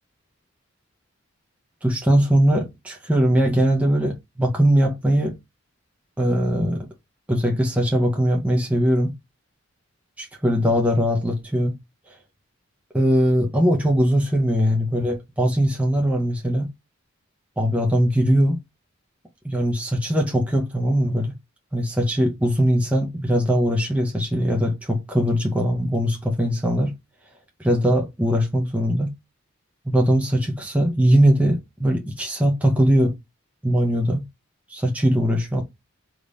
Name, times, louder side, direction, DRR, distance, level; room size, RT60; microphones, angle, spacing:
voice 1, 1.8-5.4 6.2-6.9 7.3-9.1 10.2-11.8 12.9-16.7 17.6-18.6 19.4-21.3 21.7-26.9 27.6-29.1 29.9-33.2 33.6-34.2 34.7-35.6, equal, 5° right, 0.6 m, -20 dB
3.5 x 2.4 x 3.9 m
head